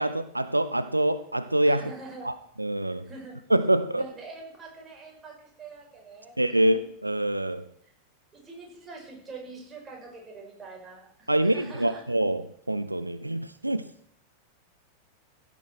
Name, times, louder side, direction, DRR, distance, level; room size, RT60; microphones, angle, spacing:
voice 1, 0.0-1.8 2.2-3.1 3.5-4.0 6.4-7.6 11.3-12.4 12.7-13.8, right 1 dB, 85° right, 13 dB, 0.4 m, -25 dB
voice 2, 1.6-2.3 3.0-3.4 3.9-6.7 7.8-7.9 8.3-12.0, right 3 dB, 20° right, -1 dB, 5.0 m, -44 dB
15.5 x 9.6 x 4.4 m, 0.67 s
figure-of-eight pair, 90°, 0 cm